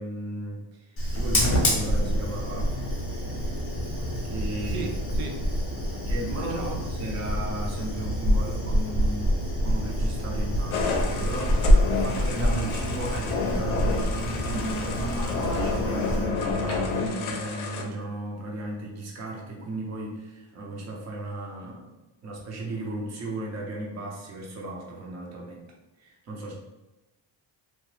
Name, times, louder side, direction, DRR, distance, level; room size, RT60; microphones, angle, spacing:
voice 1, 0.0-2.8 4.2-4.9 6.1-9.3 9.6-21.9 22.2-25.6 26.0-26.5, right 2 dB, 35° right, -2 dB, 0.6 m, -35 dB
Fire, 1.0-17.1, equal, 30° left, 0.8 m, -26 dB
voice 2, 4.7-5.4 6.3-6.9, right 4 dB, 90° right, 3 dB, 0.6 m, -37 dB
sound 1, 10.7-17.8, left 4 dB, 85° left, 0.6 m, -30 dB
sound 2, 14.5-16.9, right 1 dB, 5° right, 0.7 m, -38 dB
2.8 x 2.1 x 3.1 m, 1.0 s
cardioid pair, 170°, 47 cm